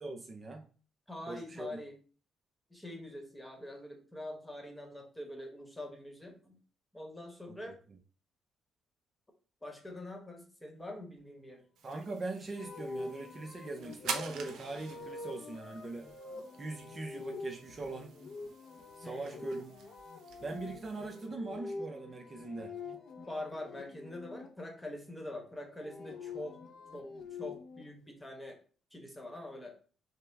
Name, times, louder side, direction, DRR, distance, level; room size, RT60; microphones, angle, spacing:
voice 1, 0.0-0.7 1.3-1.8 7.5-7.7 11.8-16.1 16.6-18.2 19.0-19.7 20.4-22.7, right 3 dB, 35° right, 3 dB, 0.6 m, -41 dB
voice 2, 1.1-2.0 2.7-6.6 6.9-7.8 9.6-11.6 19.0-19.4 23.3-26.6 26.9-27.1 27.4-28.6 28.9-29.8, left 1 dB, 10° left, 3 dB, 1.1 m, -44 dB
sound 1, 11.8-21.3, right 6 dB, 75° right, 0.6 m, -47 dB
sound 2, 12.6-24.5 25.6-27.8, left 3 dB, 65° left, 0.8 m, -45 dB
5.5 x 2.0 x 3.4 m, 0.39 s
cardioid pair, 90°, 0 cm